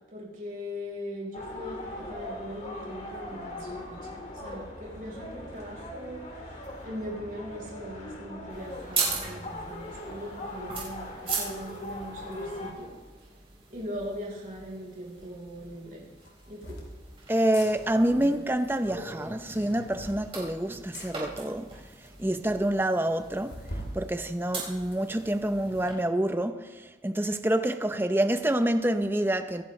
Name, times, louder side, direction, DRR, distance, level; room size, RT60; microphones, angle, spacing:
voice 1, 0.0-12.9 13.7-16.0 16.5-16.8, equal, 45° right, 4.3 m, -40 dB
sound 1, 1.3-12.7, left 1 dB, 40° left, 2.2 m, -40 dB
sound 2, 8.5-25.9, right 4 dB, 30° right, 4.2 m, -39 dB
sound 3, 15.2-15.3 16.2-16.9 17.4-17.7 19.4-20.2 20.9-21.1 21.8-21.9 22.1-22.2 22.5-22.6 23.5-24.0 24.4-25.4, equal, 60° left, 2.7 m, -41 dB
voice 2, 17.3-21.7 22.2-23.6 23.9-29.6, right 1 dB, 10° right, 0.6 m, -27 dB
25.5 x 10.5 x 3.2 m
head